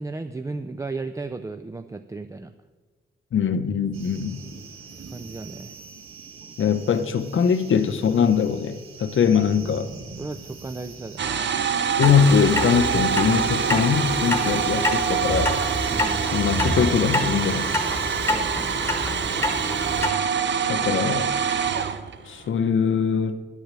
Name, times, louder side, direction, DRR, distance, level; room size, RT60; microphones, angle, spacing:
voice 1, 0.0-2.5 5.1-5.8 10.2-11.4 15.9-16.2 18.2-18.7, right 3 dB, 15° right, 0.3 m, -35 dB
voice 2, 3.3-4.4 6.6-9.9 12.0-15.6 16.2-17.7 20.7-21.4 22.2-23.4, left 7 dB, 70° left, 0.8 m, -22 dB
sound 1, 3.9-18.4, right 5 dB, 80° right, 1.5 m, -44 dB
sound 2, 11.2-22.4, right 7 dB, 60° right, 0.7 m, -25 dB
Clock, 12.0-20.1, left 2 dB, 10° left, 1.1 m, -28 dB
10.0 x 8.3 x 7.4 m
wide cardioid pair, 170°, 21 cm